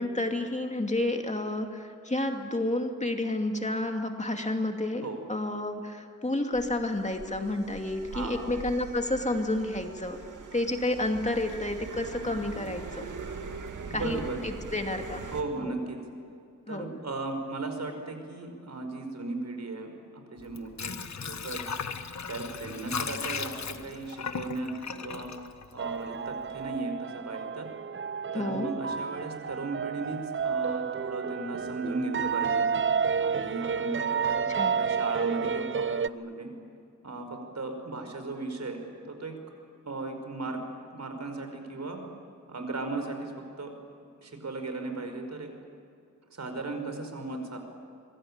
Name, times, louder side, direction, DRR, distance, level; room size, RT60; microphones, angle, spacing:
voice 1, 0.0-5.0 5.3-10.2 10.5-13.1 13.9-15.2 15.6-15.7 16.7-16.9 28.3-28.7 34.5-34.8, left 1 dB, 25° left, 4 dB, 2.5 m, -30 dB
sound 1, 6.5-15.4, right 4 dB, 75° right, 2.3 m, -42 dB
voice 2, 8.1-8.5 13.9-14.4 15.3-16.0 16.7-20.9 21.2-21.6 22.3-25.3 25.7-27.7 28.3-32.7 33.2-36.5 37.0-39.4 39.9-40.6 40.9-42.0 42.5-43.3 43.6-43.7 44.2-45.5 46.3-47.6, right 3 dB, 60° right, 5 dB, 5.3 m, -36 dB
Water / Sink (filling or washing), 20.4-26.3 26.6-26.7, left 6 dB, 60° left, 1.5 m, -37 dB
sound 2, 25.8-36.1, right 6 dB, 40° right, 0.6 m, -30 dB
26.0 x 22.5 x 8.9 m, 2.5 s
wide cardioid pair, 85°, 31 cm